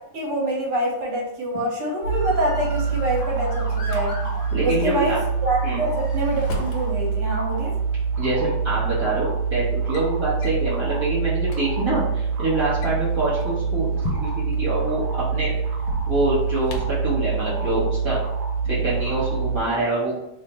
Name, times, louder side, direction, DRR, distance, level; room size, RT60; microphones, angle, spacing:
voice 1, 0.1-4.2 4.6-7.7, right 1 dB, 70° right, -2 dB, 1.6 m, -26 dB
sound 1, 2.0-19.6, right 5 dB, 90° right, 1.3 m, -25 dB
Motor vehicle (road) / Siren, 2.1-7.3 7.9-8.4, equal, 25° left, 0.8 m, -40 dB
Drawer open or close, 2.8-4.0 5.7-6.9 8.1-8.2 9.1-9.3 9.6-10.1 10.4-10.7 11.2-11.3 11.4-11.6 12.6-14.6 15.7-17.1, left 1 dB, 70° left, 1.1 m, -35 dB
voice 2, 4.5-5.2 5.6-5.8 8.2-15.5 16.1-18.2 18.6-20.2, right 2 dB, 30° right, -8 dB, 0.5 m, -25 dB
3.2 x 2.0 x 4.1 m, 0.86 s
omnidirectional pair, 1.9 m